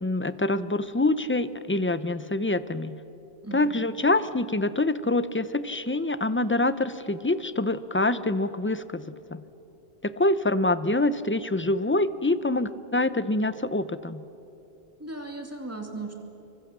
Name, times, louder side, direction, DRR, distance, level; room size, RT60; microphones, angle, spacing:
voice 1, 0.0-3.0 3.5-9.1 9.3-9.4 10.0-14.2, left 2 dB, 15° left, 14 dB, 0.5 m, -25 dB
voice 2, 3.4-3.9 15.0-16.1, right 2 dB, 15° right, 3 dB, 2.5 m, -37 dB
26.5 x 23.5 x 7.4 m, 2.9 s
omnidirectional pair, 1.1 m